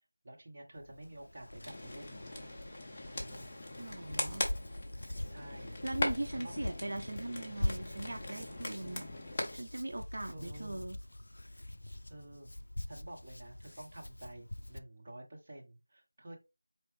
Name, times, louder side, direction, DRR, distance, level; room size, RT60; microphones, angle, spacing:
voice 1, 0.2-2.6 3.1-3.6 5.3-5.8 6.3-6.5 10.3-10.8 12.1-12.5 12.9-16.4, right 1 dB, 20° right, -2 dB, 0.8 m, -50 dB
Hands, 0.8-14.8, left 1 dB, 60° left, 0.4 m, -43 dB
sound 1, 1.6-9.6, left 1 dB, 15° left, 0.6 m, -40 dB
voice 2, 3.8-4.4 5.5-9.1 9.5-11.0, right 2 dB, 50° right, 4 dB, 0.5 m, -40 dB
4.6 x 3.0 x 3.1 m, 0.26 s
figure-of-eight pair, 175°, 0 cm